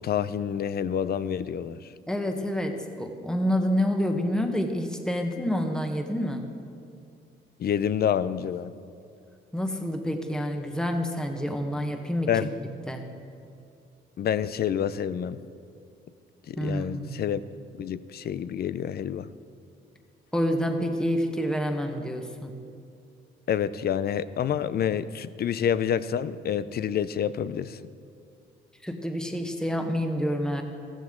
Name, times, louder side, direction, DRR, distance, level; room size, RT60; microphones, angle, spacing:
voice 1, 0.0-1.8 7.6-8.7 12.3-12.5 14.2-15.4 16.5-17.4 17.8-19.3 23.5-27.9, left 9 dB, 50° left, 15 dB, 0.5 m, -28 dB
voice 2, 2.1-6.4 9.5-12.3 12.6-13.0 16.6-17.1 20.3-22.5 28.8-30.6, equal, 5° left, 4 dB, 1.2 m, -28 dB
14.5 x 13.5 x 3.7 m, 2.5 s
cardioid pair, 90°, 20 cm